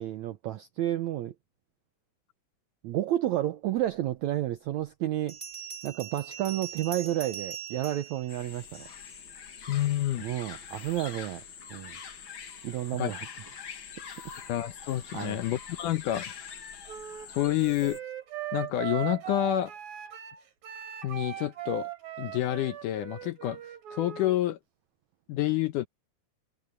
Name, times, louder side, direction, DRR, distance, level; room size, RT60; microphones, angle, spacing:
voice 1, 0.0-1.3 2.8-5.4 5.8-8.9 10.2-11.4 11.7-12.0 12.6-13.3 15.1-15.4, right 13 dB, 80° right, 1.6 m, -31 dB
Bell, 5.3-9.2, right 9 dB, 15° right, 2.3 m, -42 dB
sound 1, 8.3-18.0, left 7 dB, 55° left, 1.5 m, -44 dB
voice 2, 9.7-10.2 13.0-13.1 14.5-16.3 17.3-18.0 18.5-19.7 21.0-21.9 22.2-23.6 23.9-24.6 25.3-25.9, left 14 dB, 75° left, 2.1 m, -28 dB
Wind instrument woodwind instrument, 16.9-24.4, right 12 dB, 65° right, 4.9 m, -39 dB
omnidirectional pair, 4.3 m